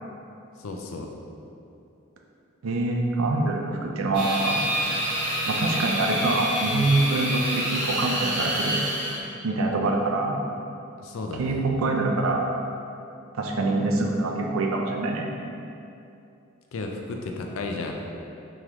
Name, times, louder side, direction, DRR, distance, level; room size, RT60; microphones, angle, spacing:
voice 1, 0.6-1.1 11.0-11.7 16.7-17.9, left 3 dB, 80° left, 2 dB, 0.4 m, -33 dB
voice 2, 2.6-4.6 5.5-8.8 9.4-10.4 11.4-12.5 13.3-15.3, right 2 dB, 90° right, 1 dB, 0.5 m, -25 dB
sound 1, 4.1-9.2, equal, 60° right, 1.1 m, -27 dB
3.6 x 3.2 x 3.0 m, 2.7 s
head